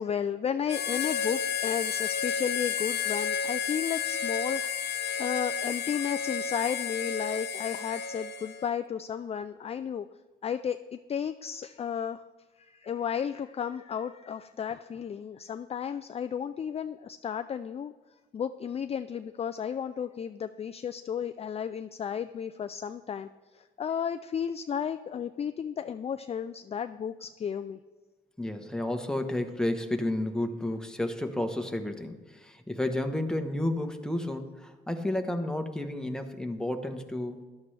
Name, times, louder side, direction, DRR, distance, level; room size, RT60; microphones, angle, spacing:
voice 1, 0.0-10.1 10.4-12.2 12.6-17.9 18.3-27.8, left 8 dB, 30° left, 10 dB, 0.3 m, -33 dB
Harmonica, 0.7-8.7, left 7 dB, 55° left, 0.9 m, -31 dB
voice 2, 28.4-37.4, left 1 dB, 5° left, 5 dB, 1.1 m, -31 dB
13.5 x 11.5 x 3.3 m, 1.4 s
cardioid pair, 105°, 21 cm